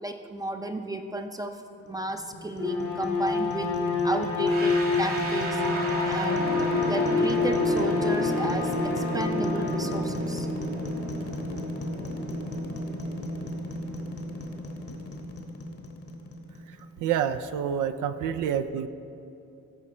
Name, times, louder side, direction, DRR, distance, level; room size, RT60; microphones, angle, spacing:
voice 1, 0.0-3.7 4.0-5.6 6.1-10.5, right 1 dB, 10° right, 5 dB, 0.5 m, -33 dB
sound 1, 1.9-17.0, left 1 dB, 50° left, 1.1 m, -36 dB
Bowed string instrument, 2.5-10.1, left 4 dB, 85° left, 1.4 m, -27 dB
sound 2, 4.4-15.3, right 1 dB, 50° right, 1.4 m, -33 dB
voice 2, 17.0-18.9, right 8 dB, 80° right, 10 dB, 0.5 m, -27 dB
14.5 x 4.9 x 4.3 m, 2.8 s
cardioid pair, 90°, 30 cm